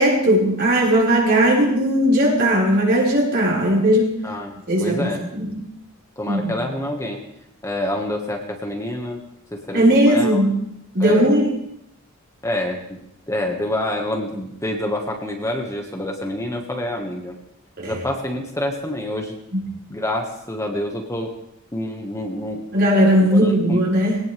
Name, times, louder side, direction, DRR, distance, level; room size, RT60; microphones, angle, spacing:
voice 1, 0.0-4.1 4.7-5.5 6.3-6.5 9.7-10.5 10.9-11.5 17.8-18.0 19.5-19.6 22.7-24.2, equal, 50° right, -4 dB, 5.6 m, -17 dB
voice 2, 4.2-5.3 6.2-7.2 7.6-9.2 9.5-9.8 10.1-10.4 11.0-11.3 12.4-13.0 13.3-17.3 17.8-19.4 19.9-21.3 21.7-22.6 23.2-23.8, left 1 dB, 15° left, 1 dB, 1.8 m, -27 dB
20.5 x 18.5 x 3.6 m, 0.76 s
head